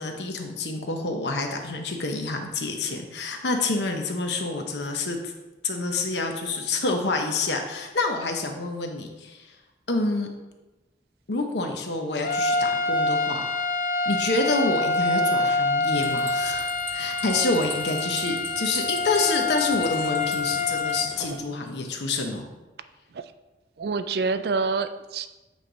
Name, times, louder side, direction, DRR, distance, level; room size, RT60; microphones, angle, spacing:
voice 1, 0.0-5.3 5.6-9.5 9.9-10.3 11.3-13.4 14.1-22.5, left 3 dB, 80° left, 4 dB, 0.9 m, -27 dB
sound 1, 12.1-21.1, left 3 dB, 50° left, 0.5 m, -26 dB
sound 2, 15.9-21.4, right 1 dB, 15° right, 0.9 m, -40 dB
voice 2, 23.8-25.3, right 4 dB, 65° right, 11 dB, 0.3 m, -27 dB
8.2 x 3.3 x 3.9 m, 1.1 s
head